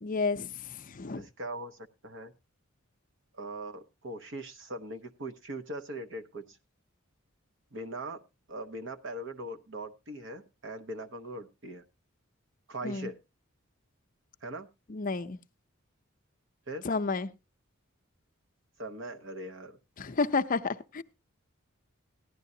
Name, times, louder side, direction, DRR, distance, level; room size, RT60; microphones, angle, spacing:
voice 1, 0.0-1.2 12.8-13.1 14.9-15.4 16.8-17.3 20.0-21.0, left 4 dB, 40° left, 9 dB, 0.5 m, -31 dB
voice 2, 1.1-2.3 3.3-6.6 7.7-8.2 8.5-11.8 12.7-13.2 14.4-14.7 16.7-16.9 18.8-19.8, right 1 dB, 60° right, 9 dB, 1.0 m, -40 dB
16.0 x 11.0 x 2.7 m, 0.25 s
head